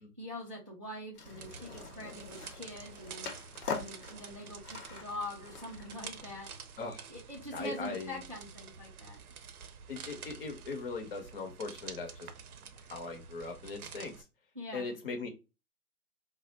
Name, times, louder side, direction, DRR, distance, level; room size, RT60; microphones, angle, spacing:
voice 1, 0.2-3.3 3.6-6.5 7.1-9.2 14.6-14.9, left 1 dB, 25° right, -3 dB, 0.3 m, -44 dB
Skateboard, 1.1-6.4, left 6 dB, 85° left, 0.8 m, -44 dB
sound 1, 1.2-14.2, right 6 dB, 70° right, 0.6 m, -49 dB
voice 2, 7.5-8.2 9.9-12.3 12.9-14.2 14.7-15.3, left 3 dB, 40° left, 4 dB, 0.7 m, -39 dB
2.4 x 2.1 x 3.8 m, 0.29 s
figure-of-eight pair, 135°, 45 cm